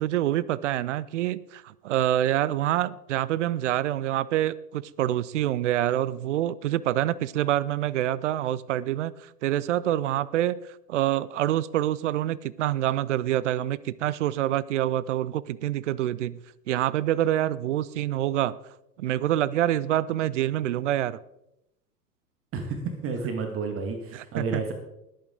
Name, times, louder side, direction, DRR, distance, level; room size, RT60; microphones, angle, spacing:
voice 1, 0.0-10.6 10.9-16.4 16.7-18.6 19.0-21.2 24.1-24.6, right 12 dB, 50° right, 21 dB, 0.6 m, -26 dB
voice 2, 22.5-24.7, right 4 dB, 25° right, 5 dB, 1.8 m, -31 dB
20.0 x 8.8 x 3.8 m, 0.84 s
figure-of-eight pair, 95°, 49 cm